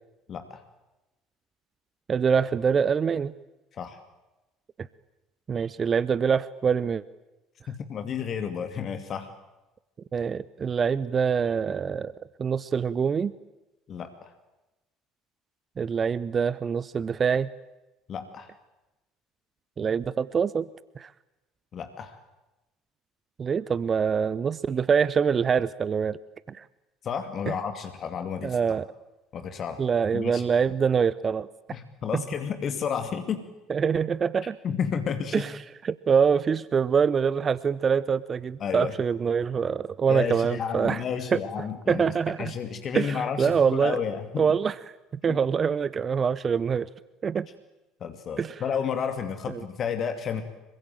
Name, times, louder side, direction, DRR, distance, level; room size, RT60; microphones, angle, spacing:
voice 1, 0.3-0.6 3.7-4.0 7.7-9.3 13.9-14.3 18.1-18.5 21.7-22.2 27.0-28.6 29.3-29.8 30.1-30.5 31.7-33.4 34.6-35.5 38.6-38.9 40.1-44.5 45.3-45.4 48.0-50.4, left 7 dB, 45° left, 8 dB, 2.4 m, -31 dB
voice 2, 2.1-3.3 5.5-7.0 10.1-12.1 12.4-13.3 15.8-17.5 19.8-20.7 21.0-21.1 23.4-26.2 26.5-26.7 28.4-28.8 29.8-31.5 32.1-32.2 33.7-34.6 35.3-35.5 35.8-41.0 41.3-41.4 41.9-42.5 42.9-44.0 44.4-44.8 45.2-46.9 47.2-47.5 48.4-48.6 49.5-49.6, right 6 dB, 35° right, 18 dB, 0.8 m, -25 dB
26.5 x 23.5 x 9.1 m, 1.0 s
figure-of-eight pair, 60°, 0 cm